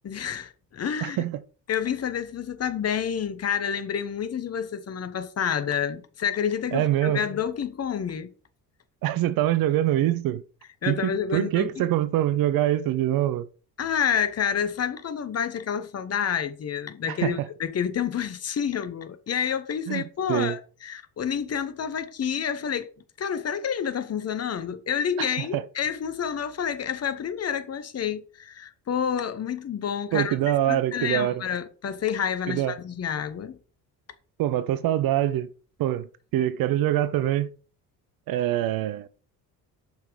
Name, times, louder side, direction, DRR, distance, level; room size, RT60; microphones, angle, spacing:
voice 1, 0.0-1.2 1.7-8.3 10.8-11.8 13.8-22.9 23.2-33.6, left 8 dB, 30° left, 1.0 m, -29 dB
voice 2, 1.0-1.4 6.7-7.2 9.0-10.4 10.9-13.5 17.1-17.5 19.9-20.6 25.2-25.6 30.1-31.4 32.5-32.8 34.4-35.5 35.8-36.1 36.3-37.5 38.3-39.1, right 13 dB, 45° right, 0.7 m, -24 dB
7.1 x 5.8 x 5.1 m
figure-of-eight pair, 50°, 50 cm